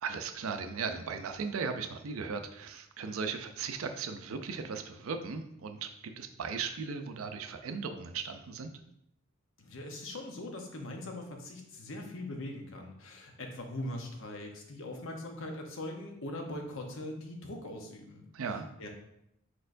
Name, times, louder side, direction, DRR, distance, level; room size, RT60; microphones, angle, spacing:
voice 1, 0.0-8.7 18.3-18.7, right 5 dB, 75° right, 7 dB, 0.5 m, -37 dB
voice 2, 9.6-18.2 18.8-18.9, left 1 dB, 65° left, 2 dB, 0.8 m, -41 dB
4.6 x 4.3 x 2.6 m, 0.78 s
head